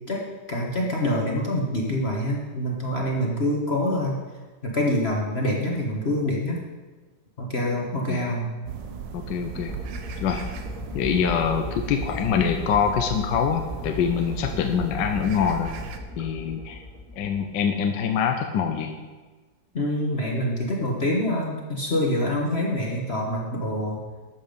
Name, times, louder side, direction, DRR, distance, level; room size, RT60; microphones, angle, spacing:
voice 1, 0.1-4.2 4.6-6.6 7.4-8.5 19.7-24.0, left 1 dB, 35° left, -2 dB, 1.5 m, -26 dB
sound 1, 8.7-16.0, right 7 dB, 75° right, 1.6 m, -37 dB
voice 2, 9.1-9.7 10.2-10.4 10.9-15.7 16.2-16.8 17.2-18.9, left 7 dB, 75° left, 5 dB, 1.4 m, -24 dB
sound 2, 9.5-17.7, left 2 dB, 5° left, 2.4 m, -37 dB
12.5 x 7.6 x 5.2 m, 1.3 s
omnidirectional pair, 2.0 m